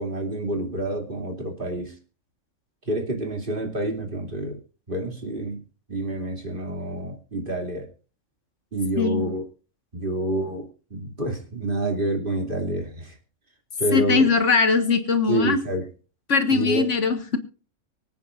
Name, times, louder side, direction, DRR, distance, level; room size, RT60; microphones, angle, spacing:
voice 1, 0.0-1.9 2.9-4.6 4.9-5.6 5.9-7.9 8.7-9.4 9.9-13.1 13.8-14.3 15.3-15.8 16.5-16.9, right 1 dB, 40° right, 3 dB, 2.9 m, -28 dB
voice 2, 13.9-15.6 16.3-17.4, left 4 dB, 65° left, 8 dB, 1.8 m, -21 dB
24.5 x 9.1 x 2.5 m, 0.36 s
omnidirectional pair, 1.3 m